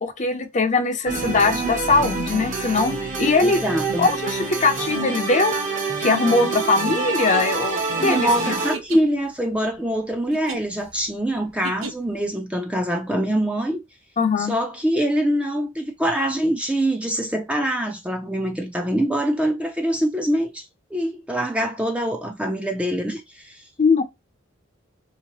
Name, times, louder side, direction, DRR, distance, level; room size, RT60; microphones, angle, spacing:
voice 1, 0.0-3.6 4.0-5.6 6.0-8.5 14.2-14.6 23.8-24.0, left 3 dB, 35° left, 0.6 m, -21 dB
sound 1, 1.1-8.8, right 3 dB, 40° right, 1.0 m, -26 dB
voice 2, 3.4-4.1 8.0-13.8 14.4-20.7 20.9-23.6, right 1 dB, 5° right, 0.5 m, -24 dB
sound 2, 7.2-12.3, right 3 dB, 85° right, 0.7 m, -37 dB
3.5 x 2.9 x 2.9 m
head